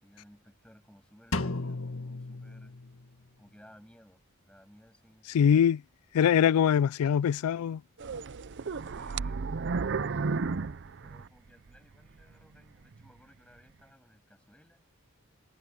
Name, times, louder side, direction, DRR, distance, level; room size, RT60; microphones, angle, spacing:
voice 1, 0.0-2.8 3.4-5.4 8.8-14.8, equal, 5° left, 7.6 m, -59 dB
Drum, 1.3-3.2, left 2 dB, 65° left, 1.9 m, -35 dB
voice 2, 5.3-5.8 6.1-7.8, left 8 dB, 85° left, 0.3 m, -23 dB
sound 1, 8.0-11.8 12.2-12.3 12.9-13.1, right 4 dB, 55° right, 0.5 m, -33 dB
head